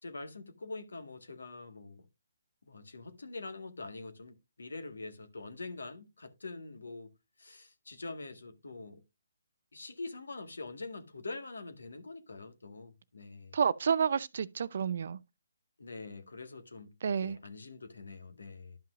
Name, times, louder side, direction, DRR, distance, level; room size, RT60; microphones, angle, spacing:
voice 1, 0.0-2.1 2.7-7.1 7.4-9.0 9.7-13.6 15.8-16.9 17.2-18.8, left 3 dB, 85° left, 1.7 m, -44 dB
voice 2, 13.5-15.2 17.0-17.4, right 7 dB, 55° right, 0.5 m, -30 dB
12.0 x 5.6 x 2.5 m
hypercardioid pair, 155°, 0 cm